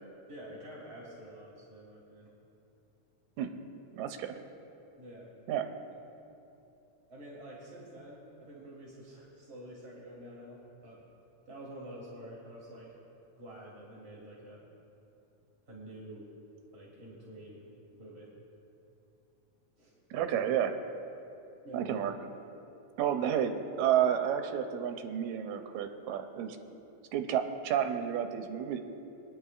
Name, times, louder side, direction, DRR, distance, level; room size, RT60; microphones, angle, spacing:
voice 1, 0.3-2.3 5.0-5.3 7.1-11.0 11.5-12.9 13.4-14.6 15.7-16.3 16.7-18.3 19.8-19.9 20.3-20.4 21.6-22.0, right 1 dB, 25° right, -6 dB, 1.5 m, -48 dB
voice 2, 3.9-4.4 5.5-5.7 20.1-20.7 21.7-22.1 23.0-26.6 27.1-28.8, right 9 dB, 80° right, 6 dB, 2.0 m, -31 dB
23.5 x 10.0 x 2.4 m, 2.8 s
omnidirectional pair, 3.3 m